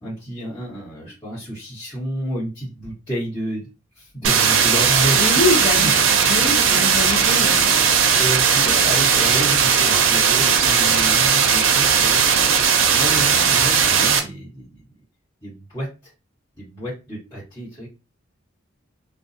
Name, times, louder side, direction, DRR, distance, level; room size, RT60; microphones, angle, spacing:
voice 1, 0.0-3.7 3.9-5.4 5.7-5.9 6.2-7.1 8.2-12.2 12.8-14.8 15.4-16.1 16.6-17.9, equal, 25° left, -11 dB, 1.4 m, -30 dB
sound 1, 4.2-14.2, right 6 dB, 85° right, 0.5 m, -17 dB
voice 2, 5.2-5.9 6.3-7.7, left 3 dB, 45° left, 2 dB, 0.5 m, -24 dB
2.4 x 2.2 x 2.6 m, 0.28 s
head